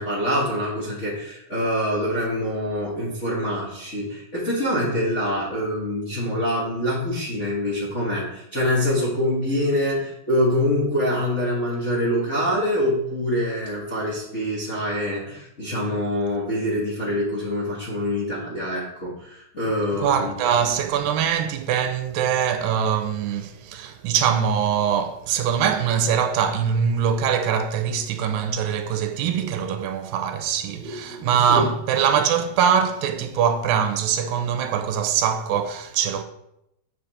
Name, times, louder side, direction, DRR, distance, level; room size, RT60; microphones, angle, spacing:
voice 1, 0.0-20.3 30.8-31.6, equal, 40° left, 1.0 m, -25 dB
voice 2, 20.0-36.2, right 8 dB, 85° right, 2.4 m, -23 dB
8.5 x 5.2 x 4.3 m
omnidirectional pair, 4.1 m